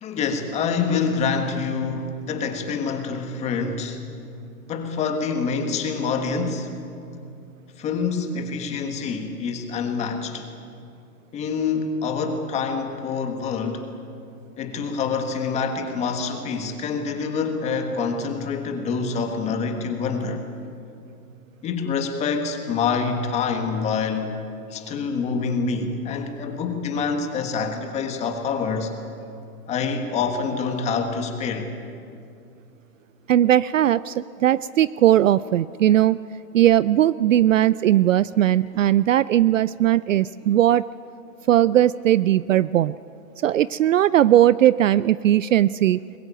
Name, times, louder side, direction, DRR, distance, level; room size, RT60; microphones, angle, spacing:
voice 1, 0.0-4.0 4.7-6.7 7.8-10.5 11.3-13.9 14.6-20.4 21.6-24.4 24.7-28.9 29.7-31.7, left 5 dB, 15° left, 6 dB, 1.5 m, -26 dB
voice 2, 33.3-36.2 36.5-40.8 41.5-43.0 43.4-46.0, right 12 dB, 55° right, 19 dB, 0.5 m, -18 dB
23.0 x 21.0 x 9.0 m, 2.5 s
hypercardioid pair, 160°, 46 cm